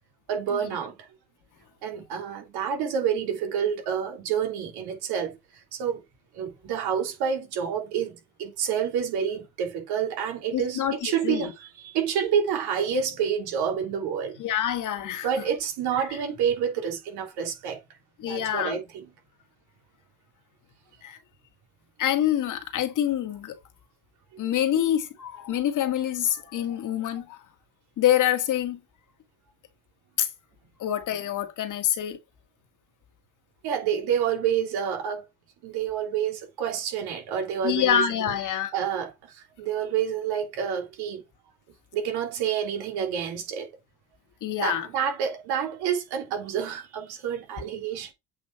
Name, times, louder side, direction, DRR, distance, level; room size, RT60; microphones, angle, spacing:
voice 1, 0.3-0.9 1.8-5.4 5.7-6.0 6.3-14.4 15.2-17.8 18.2-19.0 33.6-35.2 35.6-41.2 41.9-43.7 44.6-48.1, right 8 dB, 90° right, 3.3 m, -28 dB
voice 2, 10.5-11.5 14.4-15.3 18.2-18.8 21.0-21.2 22.0-23.5 24.4-27.4 28.0-28.8 30.2-30.3 30.8-32.2 37.6-38.7 44.4-44.9, left 10 dB, 55° left, 1.7 m, -26 dB
8.3 x 5.1 x 4.5 m
cardioid pair, 130°, 37 cm